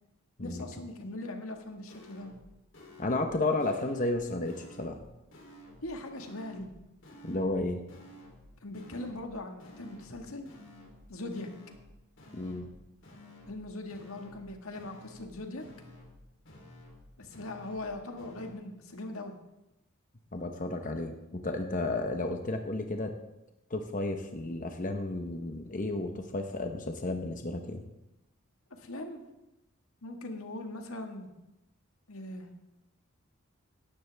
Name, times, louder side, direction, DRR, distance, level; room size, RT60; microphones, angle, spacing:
voice 1, 0.4-2.3 5.8-6.7 8.6-10.5 11.1-11.5 13.5-15.6 17.2-19.3 28.7-29.2 30.0-31.3 32.1-32.5, left 2 dB, 80° left, 4 dB, 1.7 m, -40 dB
sound 1, 1.5-1.6 1.9-2.4 2.7-3.3 3.6-4.2 4.4-5.0 5.3-5.9 6.2-6.7 7.0-7.6 7.9-8.4 8.7-9.3 9.6-10.2 10.4-11.0 11.3-11.9 12.2-12.7 13.0-13.6 13.9-14.5 14.7-15.3 15.6-16.2 16.4-17.0 17.3-17.9 18.2-18.5, left 1 dB, 60° left, 3.3 m, -53 dB
voice 2, 3.0-5.0 7.2-7.8 12.3-12.7 20.3-23.1 23.7-27.8, left 2 dB, 40° left, 5 dB, 1.0 m, -32 dB
17.0 x 12.5 x 3.5 m, 0.95 s
head